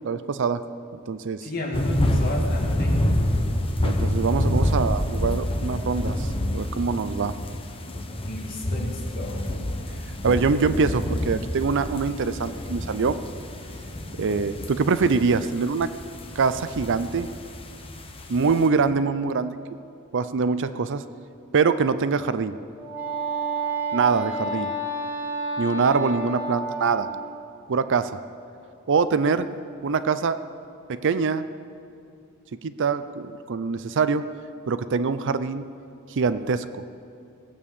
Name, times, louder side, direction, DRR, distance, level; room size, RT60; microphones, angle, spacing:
voice 1, 0.0-0.6 1.1-1.5 3.8-7.3 10.2-13.2 14.2-15.9 16.4-17.3 18.3-19.6 20.1-21.0 21.5-22.5 23.9-24.7 25.6-27.1 27.7-28.2 28.9-29.5 29.8-30.4 30.9-31.5 32.6-34.2 34.7-35.7 36.1-36.6, right 5 dB, 55° right, 13 dB, 0.5 m, -24 dB
voice 2, 1.4-3.0 7.0-7.1 8.2-9.4, left 1 dB, 45° left, -1 dB, 2.5 m, -33 dB
sound 1, 1.7-18.6, left 1 dB, 25° left, 1.0 m, -28 dB
Wind instrument woodwind instrument, 22.7-27.4, right 2 dB, 10° right, 2.2 m, -30 dB
19.0 x 8.4 x 7.2 m, 2.5 s
head